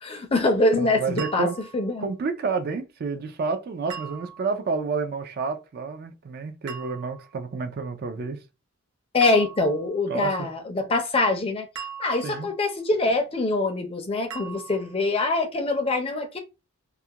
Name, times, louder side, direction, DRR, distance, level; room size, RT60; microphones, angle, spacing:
voice 1, 0.0-2.1 9.1-11.7 12.0-16.4, left 2 dB, 25° left, 0.4 m, -24 dB
voice 2, 0.8-1.6 2.0-8.4 10.1-10.5 12.2-12.5, right 4 dB, 45° right, 0.3 m, -29 dB
sound 1, 1.2-1.9 3.9-4.6 6.7-7.4 9.2-9.9 11.8-12.6 14.3-15.0, right 7 dB, 80° right, 0.6 m, -40 dB
2.3 x 2.1 x 2.7 m
head